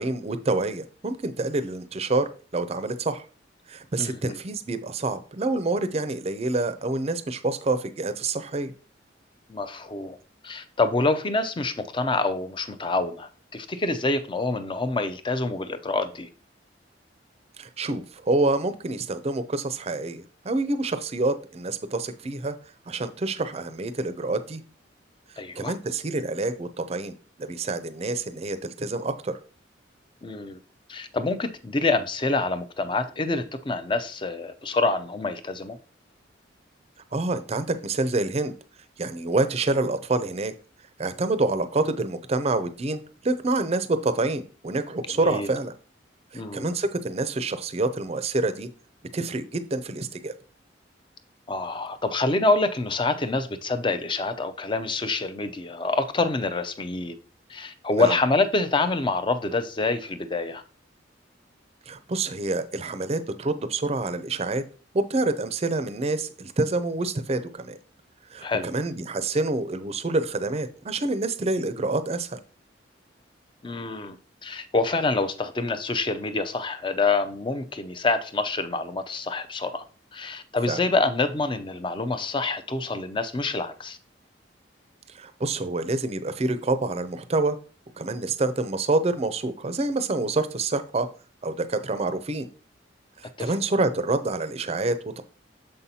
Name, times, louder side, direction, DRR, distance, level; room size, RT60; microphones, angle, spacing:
voice 1, 0.0-3.2 3.7-8.7 17.6-22.6 22.9-24.6 25.6-29.4 37.1-38.5 39.0-40.5 41.0-45.7 46.3-48.7 49.1-50.3 57.9-58.2 61.9-64.6 64.9-67.8 68.3-72.4 80.7-80.8 85.1-87.6 88.0-91.1 91.4-92.5 93.2-95.2, right 2 dB, 35° right, 0.5 m, -27 dB
voice 2, 4.0-4.4 9.5-10.2 10.4-16.3 25.4-25.7 30.2-30.6 30.9-35.8 45.2-45.5 46.3-46.7 51.5-57.2 57.5-60.6 68.4-68.7 73.6-74.2 74.4-79.8 80.1-84.0 93.4-93.5, left 3 dB, 25° left, 0.5 m, -26 dB
6.6 x 5.5 x 2.8 m
head